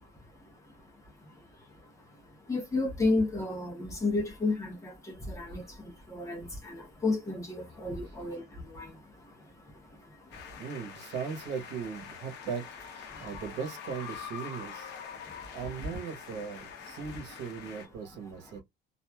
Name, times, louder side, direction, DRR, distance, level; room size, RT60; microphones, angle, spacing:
voice 1, 0.0-10.7 13.1-13.3 15.1-15.6 15.9-16.0 18.5-18.6, left 3 dB, 15° left, 0.9 m, -34 dB
sound 1, 10.3-17.9, left 7 dB, 65° left, 0.8 m, -45 dB
voice 2, 10.6-14.9 15.5-18.6, right 6 dB, 65° right, 1.0 m, -38 dB
3.0 x 2.5 x 2.2 m
cardioid pair, 165°, 19 cm